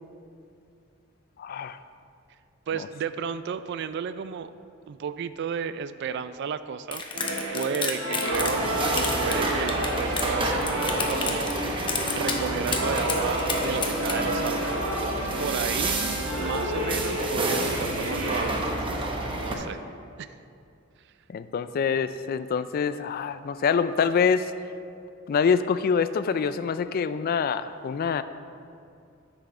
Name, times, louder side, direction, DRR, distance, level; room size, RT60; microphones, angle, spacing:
voice 1, 1.4-1.8 21.3-24.5 25.3-28.2, left 6 dB, 50° left, 12 dB, 0.3 m, -25 dB
voice 2, 2.7-4.5 4.9-7.0 7.5-8.7 8.9-10.5 11.1-19.0 19.3-19.8 20.2-20.3, right 7 dB, 60° right, 13 dB, 0.3 m, -33 dB
sound 1, 6.9-8.7 8.9-10.3 10.6-11.6 11.9-12.4 12.7-14.1, left 5 dB, 25° left, 0.8 m, -30 dB
sound 2, 7.1-18.4, equal, 85° right, 1.9 m, -30 dB
sound 3, 8.3-19.5, right 2 dB, 25° right, 0.9 m, -30 dB
10.0 x 6.1 x 4.3 m, 2.5 s
head